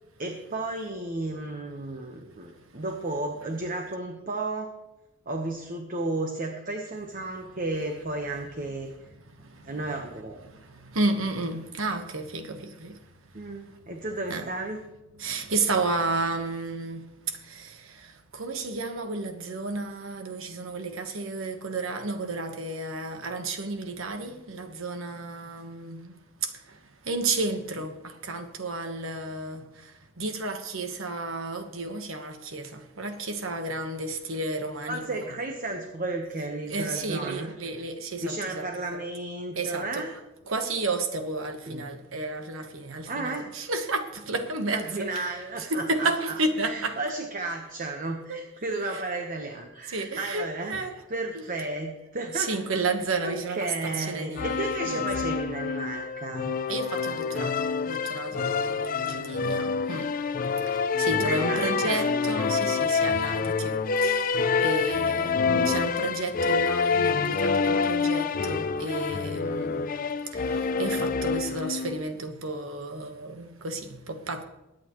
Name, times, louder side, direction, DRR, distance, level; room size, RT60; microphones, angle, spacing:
voice 1, 0.2-4.7 5.3-8.9 9.6-10.4 13.3-14.8 34.9-37.5 38.2-40.1 41.7-41.8 43.1-43.5 44.7-46.3 46.6-52.5 53.2-56.5 61.1-62.0 65.5-65.8, right 2 dB, 45° right, 1.1 m, -33 dB
voice 2, 10.5-13.0 14.3-14.5 15.2-26.2 26.4-26.5 27.0-29.7 30.2-35.3 36.7-39.0 39.5-40.1 40.5-47.0 48.3-48.4 48.9-49.0 49.9-50.9 51.3-51.4 52.3-55.4 56.7-60.1 60.7-69.9 70.3-74.4, right 3 dB, 85° right, 1.3 m, -32 dB
sound 1, 54.4-72.1, left 5 dB, 45° left, 0.5 m, -27 dB
21.5 x 8.8 x 3.1 m
head